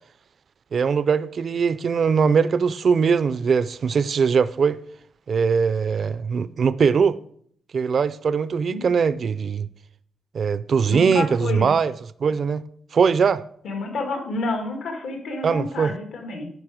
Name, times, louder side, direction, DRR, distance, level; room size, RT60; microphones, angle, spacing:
voice 1, 0.7-4.8 5.3-7.2 7.7-9.7 10.3-12.6 12.9-13.4 15.4-15.9, right 6 dB, 50° right, 0.3 m, -21 dB
voice 2, 10.9-11.8 13.6-16.5, left 3 dB, 90° left, 1.9 m, -29 dB
10.5 x 4.9 x 4.9 m
wide cardioid pair, 140°, 0 cm